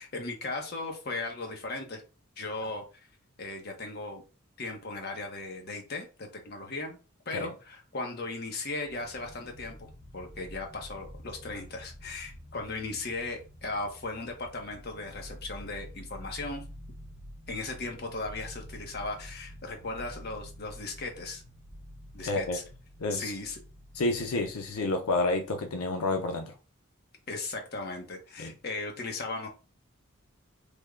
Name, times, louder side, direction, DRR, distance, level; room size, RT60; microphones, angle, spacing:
voice 1, 0.0-2.0 2.4-2.8 3.4-4.2 4.6-7.0 7.3-9.9 10.1-16.6 17.5-21.4 22.1-22.6 23.1-23.6 27.3-29.5, left 3 dB, 45° left, 0.8 m, -37 dB
sound 1, 8.8-25.9, equal, 15° left, 0.9 m, -48 dB
voice 2, 22.3-22.6 23.0-23.3 23.9-26.5 28.4-28.5, left 2 dB, 85° left, 0.6 m, -29 dB
3.4 x 2.2 x 3.5 m
head